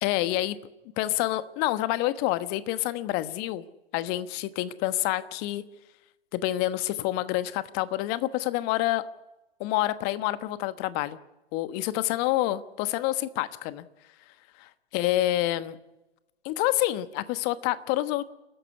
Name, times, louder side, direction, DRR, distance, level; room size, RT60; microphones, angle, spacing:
voice 1, 0.0-0.6 1.0-3.6 3.9-5.6 6.3-9.1 9.6-11.2 11.5-13.8 14.6-15.8 16.4-18.2, left 15 dB, 30° left, 14 dB, 1.2 m, -27 dB
29.5 x 14.0 x 9.5 m, 1.0 s
figure-of-eight pair, 115°, 31 cm